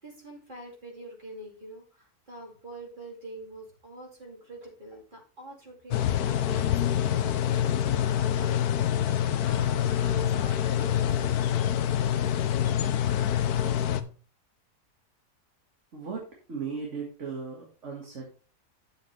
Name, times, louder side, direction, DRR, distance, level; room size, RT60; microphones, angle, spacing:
voice 1, 0.0-8.0 8.3-11.6, right 1 dB, 30° right, 0 dB, 2.6 m, -46 dB
sound 1, 5.9-14.0, left 10 dB, 70° left, 1.1 m, -26 dB
voice 2, 15.9-18.3, right 5 dB, 45° right, -1 dB, 2.0 m, -37 dB
10.0 x 7.8 x 3.2 m, 0.38 s
omnidirectional pair, 1.8 m